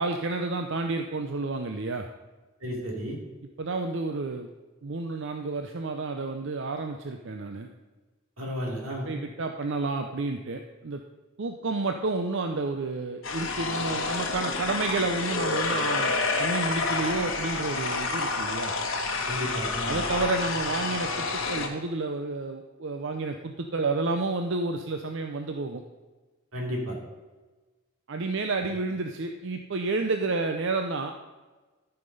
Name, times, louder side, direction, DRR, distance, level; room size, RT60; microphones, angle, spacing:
voice 1, 0.0-2.1 3.6-4.5 4.8-7.7 9.1-11.0 11.4-16.1 16.4-18.7 19.9-25.8 28.1-31.1, right 3 dB, 60° right, 5 dB, 0.6 m, -30 dB
voice 2, 2.6-3.2 8.4-9.1 19.2-20.0 26.5-27.0, equal, 90° right, -1 dB, 2.9 m, -32 dB
sound 1, 13.2-21.7, left 3 dB, 70° left, 1.4 m, -29 dB
13.0 x 5.9 x 5.4 m, 1.2 s
head